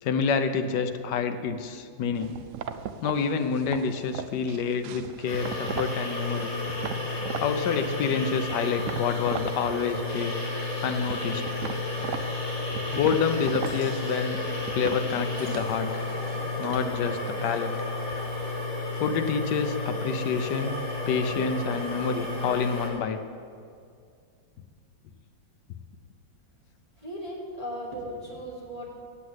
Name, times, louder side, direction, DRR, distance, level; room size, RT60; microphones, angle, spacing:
voice 1, 0.0-2.4 3.0-6.5 7.4-10.4 10.8-11.4 12.9-14.4 14.7-15.9 16.6-17.7 19.0-20.8 21.1-23.2, left 6 dB, 70° left, 8 dB, 1.3 m, -28 dB
sound 1, 2.2-6.0 6.4-7.5 7.9-9.5 9.8-10.5 10.8-17.0, right 8 dB, 80° right, 0.7 m, -38 dB
sound 2, 5.3-22.9, left 2 dB, 20° left, 2.9 m, -32 dB
voice 2, 27.0-28.9, equal, 25° right, -4 dB, 1.3 m, -37 dB
8.4 x 8.1 x 8.0 m, 2.3 s
omnidirectional pair, 1.9 m